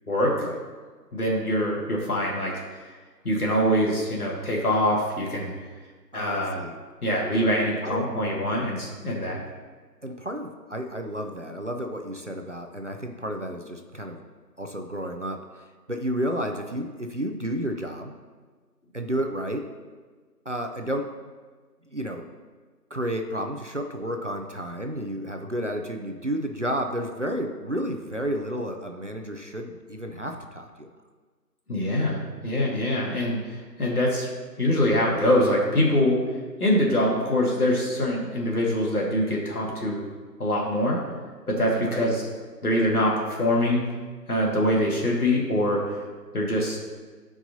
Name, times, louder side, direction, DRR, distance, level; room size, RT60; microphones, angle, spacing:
voice 1, 1.1-2.8 3.2-5.5 6.1-6.6 7.0-9.4 31.7-34.3 34.6-36.2 36.6-40.0 40.4-41.0 41.5-42.2 42.6-43.8 44.3-46.0 46.3-46.8, left 1 dB, 60° left, -3 dB, 2.1 m, -24 dB
voice 2, 6.1-6.8 7.8-8.1 10.0-14.2 14.6-18.1 18.9-19.7 20.5-21.1 21.9-22.3 22.9-30.9 41.8-42.1, equal, 50° right, 3 dB, 0.6 m, -31 dB
13.0 x 4.7 x 2.8 m, 1.4 s
figure-of-eight pair, 170°, 50 cm